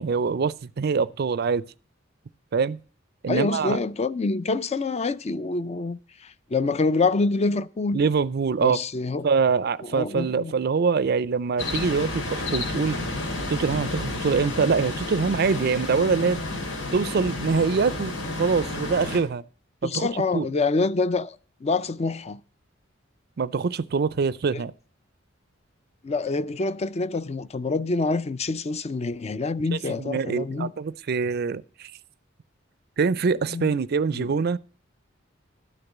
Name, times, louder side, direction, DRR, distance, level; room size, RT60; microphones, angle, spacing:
voice 1, 0.0-1.6 2.5-2.8 3.2-3.8 7.9-8.8 9.2-13.0 13.5-16.4 16.9-19.4 19.8-20.5 23.4-24.7 30.0-31.9 33.0-34.6, right 5 dB, 55° right, 0.4 m, -24 dB
voice 2, 3.3-8.0 8.6-9.3 9.8-10.6 19.8-22.4 24.5-24.6 26.0-30.7 33.5-33.8 34.1-34.3, left 3 dB, 35° left, 0.5 m, -26 dB
sound 1, 11.6-19.2, left 2 dB, 90° left, 3.2 m, -31 dB
12.0 x 6.7 x 7.2 m
head